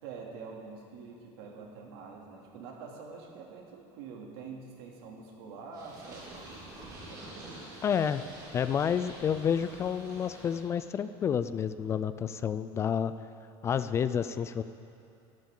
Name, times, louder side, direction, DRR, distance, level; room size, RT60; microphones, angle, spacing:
voice 1, 0.0-7.9, right 5 dB, 85° right, -1 dB, 2.8 m, -46 dB
Purr, 5.7-10.6, right 1 dB, 30° right, 3.8 m, -47 dB
voice 2, 7.8-8.2 8.5-13.1 13.6-14.6, left 8 dB, 20° left, 13 dB, 0.3 m, -29 dB
24.5 x 12.5 x 3.8 m, 2.7 s
cardioid pair, 170°, 13 cm